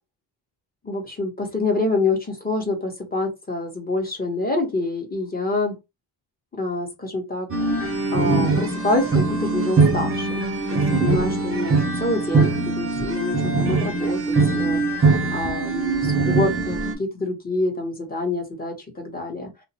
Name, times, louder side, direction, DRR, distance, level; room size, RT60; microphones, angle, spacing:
voice 1, 0.8-5.7 6.5-19.5, left 2 dB, 20° left, 1.1 m, -27 dB
sound 1, 7.5-16.9, right 3 dB, 30° right, 0.7 m, -22 dB
2.5 x 2.0 x 2.8 m
cardioid pair, 85°, 44 cm